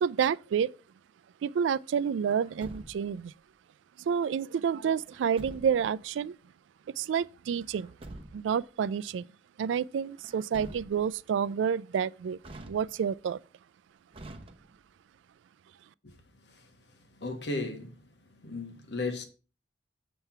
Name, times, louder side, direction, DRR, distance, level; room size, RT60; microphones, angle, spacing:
voice 1, 0.0-0.7 1.4-3.3 4.1-6.3 7.0-7.9 8.3-9.2 9.6-12.4 12.7-13.4, right 7 dB, 85° right, 0.3 m, -29 dB
Truck, 2.3-3.3 5.1-6.0 7.6-8.6 10.2-11.2 12.4-13.2 14.1-15.0, right 1 dB, 30° right, 0.8 m, -47 dB
voice 2, 17.2-18.0 18.4-19.3, left 2 dB, 65° left, 1.2 m, -34 dB
7.4 x 3.4 x 5.7 m
head